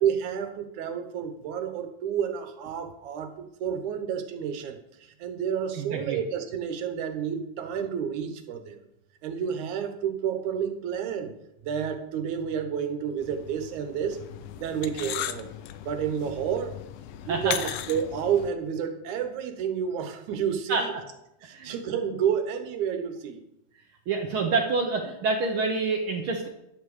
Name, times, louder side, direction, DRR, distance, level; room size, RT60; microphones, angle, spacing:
voice 1, 0.0-8.8 9.2-11.3 11.6-14.2 14.6-15.5 15.9-16.8 17.2-20.9 21.4-23.4, right 8 dB, 85° right, 7 dB, 2.4 m, -30 dB
voice 2, 5.7-6.2 17.3-17.5 20.7-20.8 21.5-21.7 24.1-26.5, right 4 dB, 65° right, 2 dB, 1.4 m, -27 dB
sound 1, 13.2-18.5, left 12 dB, 75° left, 1.7 m, -37 dB
11.0 x 7.1 x 4.8 m, 0.83 s
omnidirectional pair, 3.3 m